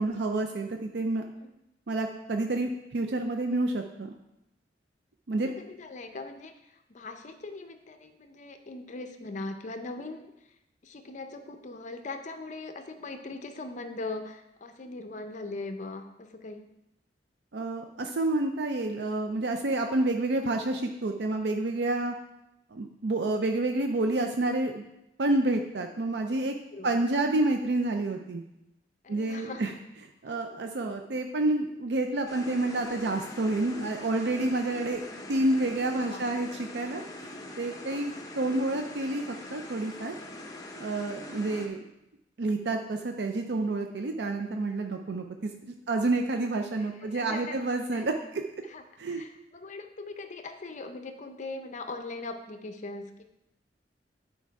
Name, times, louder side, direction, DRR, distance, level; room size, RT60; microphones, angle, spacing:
voice 1, 0.0-1.2 1.9-4.1 5.3-5.5 17.5-22.1 22.7-24.8 25.2-26.5 26.8-28.4 29.1-29.7 30.2-35.0 35.3-40.1 40.8-41.8 42.4-48.4 49.0-49.2, right 2 dB, 65° right, 5 dB, 0.5 m, -29 dB
voice 2, 5.3-10.3 10.8-16.7 26.7-27.0 29.0-29.8 30.3-30.4 30.8-31.0 36.0-36.2 37.9-38.2 47.0-47.7 47.9-48.0 48.6-53.2, left 3 dB, 45° left, 7 dB, 0.6 m, -40 dB
sound 1, 32.3-41.7, left 2 dB, 20° left, 0.9 m, -43 dB
9.8 x 4.5 x 4.6 m, 0.87 s
head